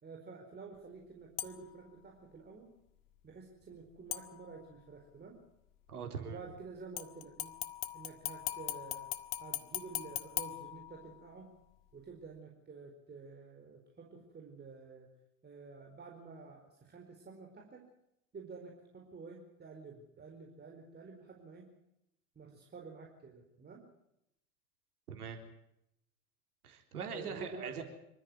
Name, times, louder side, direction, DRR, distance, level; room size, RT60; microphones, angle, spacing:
voice 1, 0.0-2.8 3.2-5.4 6.2-7.5 7.9-9.1 9.4-11.5 11.9-15.1 15.4-17.9 18.3-21.7 22.3-23.9 27.1-27.8, right 4 dB, 20° right, 0 dB, 4.5 m, -50 dB
sound 1, 1.4-1.8 4.1-4.8 7.0-11.4 11.8-11.9, left 14 dB, 45° left, 1.7 m, -41 dB
voice 2, 5.9-6.4 25.1-25.4 26.6-27.8, right 6 dB, 75° right, 5 dB, 3.6 m, -42 dB
26.0 x 14.0 x 9.0 m, 0.81 s
figure-of-eight pair, 80°, 45 cm